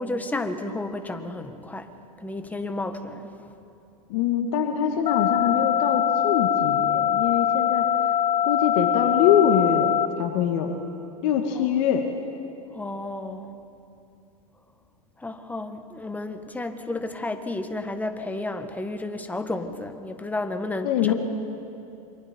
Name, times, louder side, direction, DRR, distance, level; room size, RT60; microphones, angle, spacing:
voice 1, 0.0-1.9 2.2-3.5 11.5-11.7 12.7-13.6 15.2-21.1, left 2 dB, 10° left, 7 dB, 1.6 m, -32 dB
voice 2, 4.1-7.9 8.4-10.8 11.2-12.1 20.8-21.1, left 8 dB, 60° left, 4 dB, 1.9 m, -23 dB
sound 1, 5.1-10.1, left 10 dB, 35° left, 1.0 m, -23 dB
28.0 x 24.0 x 4.5 m, 2.7 s
hypercardioid pair, 105°, 20 cm